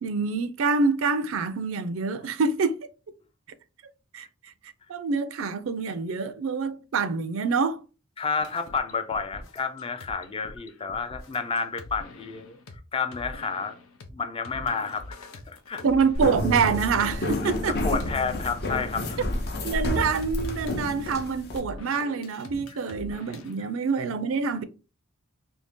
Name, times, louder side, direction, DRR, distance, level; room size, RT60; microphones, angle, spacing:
voice 1, 0.0-2.8 4.1-4.5 4.9-7.8 15.8-18.0 19.6-24.6, right 5 dB, 70° right, 0.4 m, -26 dB
voice 2, 8.2-12.6 12.9-13.8 14.1-15.8 17.7-19.3, left 5 dB, 25° left, 0.4 m, -30 dB
sound 1, 8.4-12.8 13.1-14.1 14.4-23.6, left 2 dB, 90° left, 0.6 m, -43 dB
sound 2, 16.1-21.6, left 1 dB, 55° left, 0.7 m, -30 dB
2.8 x 2.7 x 3.5 m
head